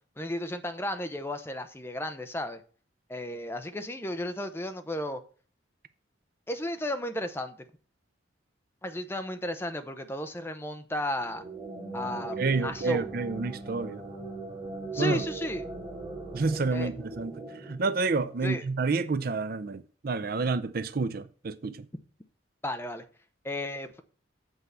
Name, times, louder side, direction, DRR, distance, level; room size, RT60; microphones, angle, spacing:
voice 1, 0.2-2.6 3.1-5.2 6.5-7.6 8.8-11.4 11.9-13.1 14.9-15.7 16.7-16.9 18.4-18.6 22.6-23.0 23.4-24.0, left 1 dB, 10° left, 0.6 m, -34 dB
sound 1, 11.2-18.6, right 3 dB, 25° right, 2.4 m, -40 dB
voice 2, 12.4-14.0 15.0-15.2 16.3-17.4 17.6-21.8, right 4 dB, 50° right, 0.5 m, -29 dB
8.0 x 4.7 x 6.7 m
head